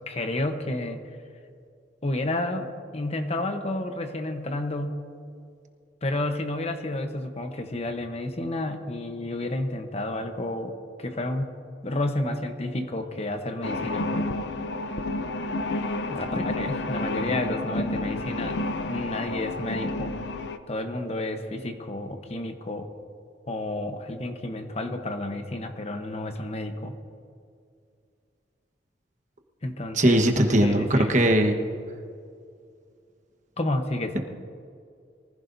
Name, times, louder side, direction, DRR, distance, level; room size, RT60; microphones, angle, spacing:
voice 1, 0.1-1.0 2.0-5.0 6.0-11.5 11.8-14.3 16.1-20.1 20.7-22.9 23.5-26.9 29.6-30.2 30.6-31.2 33.6-34.2, left 1 dB, 35° left, 6 dB, 1.0 m, -31 dB
sound 1, 13.6-20.6, left 2 dB, 75° left, 0.6 m, -30 dB
voice 2, 29.9-31.5, right 1 dB, 45° right, 4 dB, 1.3 m, -20 dB
24.0 x 15.5 x 2.7 m, 2.3 s
head